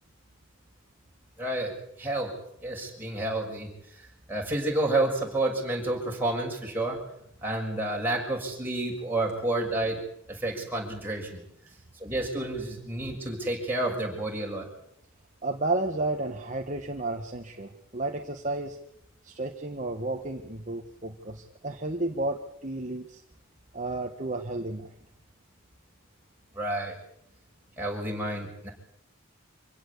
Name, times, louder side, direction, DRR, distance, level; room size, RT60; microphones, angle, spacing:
voice 1, 1.4-2.3 2.6-3.7 4.3-7.0 7.4-10.0 10.3-11.4 12.0-14.7 26.5-27.0 27.8-28.7, right 2 dB, 10° right, -1 dB, 6.3 m, -30 dB
voice 2, 15.4-18.8 19.2-23.2 23.7-24.9, right 2 dB, 35° right, 3 dB, 1.5 m, -32 dB
26.0 x 16.5 x 8.5 m, 0.74 s
head